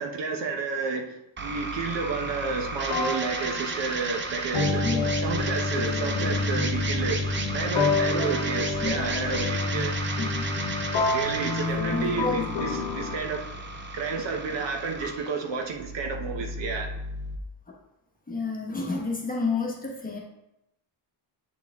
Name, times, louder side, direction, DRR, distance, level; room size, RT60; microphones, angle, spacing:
voice 1, 0.0-7.2 7.5-9.9 11.1-13.5 13.9-16.9, right 4 dB, 60° right, 3 dB, 0.9 m, -31 dB
sound 1, 1.4-17.4, right 3 dB, 25° right, 0.5 m, -34 dB
sound 2, 2.0-2.2 2.9-13.2, left 3 dB, 65° left, 1.0 m, -28 dB
voice 2, 4.8-5.2 8.8-9.0 10.2-10.4 11.9-12.4 13.9-14.0 14.8-14.9 18.3-20.2, left 4 dB, 15° left, -2 dB, 1.1 m, -30 dB
8.2 x 4.8 x 3.5 m, 0.86 s
wide cardioid pair, 180°, 49 cm